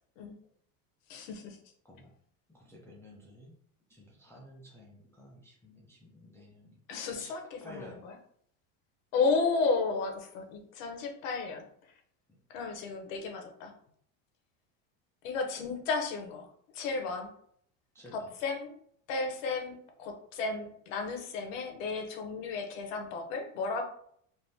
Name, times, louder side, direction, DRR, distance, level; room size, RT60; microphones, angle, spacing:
voice 1, 1.1-1.6 6.9-8.1 9.1-11.6 12.5-13.7 15.2-16.5 16.7-17.3 18.1-18.7 19.1-23.8, left 4 dB, 85° left, 4 dB, 0.9 m, -33 dB
voice 2, 2.5-3.6 3.9-6.8 7.1-7.4 7.6-8.0 17.9-18.3, left 1 dB, 5° left, -3 dB, 0.3 m, -52 dB
3.4 x 2.5 x 2.7 m, 0.66 s
supercardioid pair, 135°, 39 cm